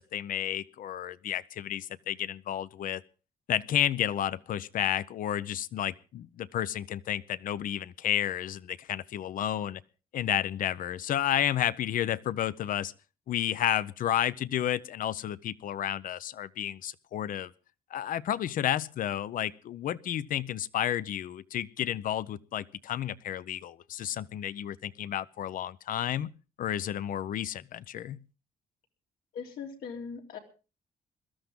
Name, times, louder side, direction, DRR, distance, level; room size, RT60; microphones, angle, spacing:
voice 1, 0.0-3.0 3.5-9.8 10.1-12.9 13.3-17.5 17.9-26.3 26.6-28.2, left 11 dB, 65° left, 18 dB, 0.7 m, -31 dB
voice 2, 29.3-30.4, left 6 dB, 85° left, 1 dB, 3.6 m, -40 dB
21.5 x 13.5 x 3.7 m, 0.35 s
cardioid pair, 125°, 15 cm